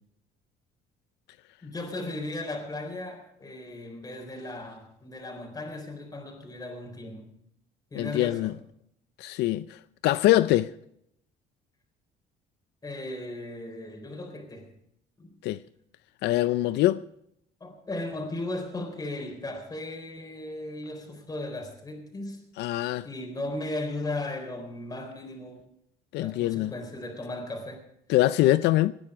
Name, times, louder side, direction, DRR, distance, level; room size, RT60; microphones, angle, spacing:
voice 1, 1.6-7.3 7.9-8.6 12.8-14.7 15.2-15.3 17.6-22.4 23.0-25.7 26.2-27.8, left 2 dB, 20° left, 4.1 m, -36 dB
voice 2, 7.9-8.5 9.2-9.8 10.0-10.7 15.4-15.6 16.2-17.0 22.6-23.1 26.1-26.7 28.1-28.9, left 15 dB, 80° left, 0.5 m, -23 dB
19.0 x 10.5 x 5.0 m
cardioid pair, 110°, 17 cm